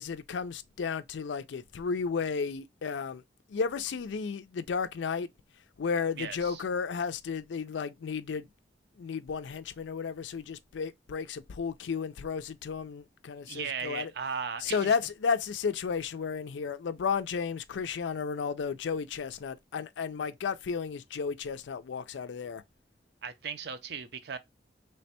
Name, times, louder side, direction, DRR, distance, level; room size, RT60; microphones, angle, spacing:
voice 1, 0.0-3.2 3.5-5.3 5.8-8.5 9.0-14.1 14.6-22.6, left 5 dB, 80° left, 0.4 m, -33 dB
voice 2, 6.2-6.6 13.5-14.9 23.2-24.4, right 6 dB, 60° right, 0.5 m, -37 dB
3.3 x 2.2 x 4.1 m
head